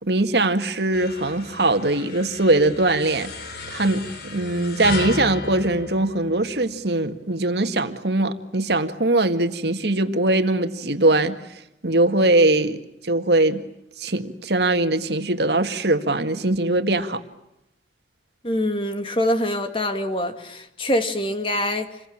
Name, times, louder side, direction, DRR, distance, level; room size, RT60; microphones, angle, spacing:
voice 1, 0.0-3.3 3.7-13.6 14.0-17.2, right 2 dB, 70° right, 8 dB, 2.0 m, -21 dB
sound 1, 0.9-6.7, left 3 dB, 60° left, 3.8 m, -35 dB
voice 2, 18.4-22.0, left 1 dB, 30° left, 7 dB, 2.5 m, -24 dB
28.5 x 22.5 x 9.0 m, 0.87 s
head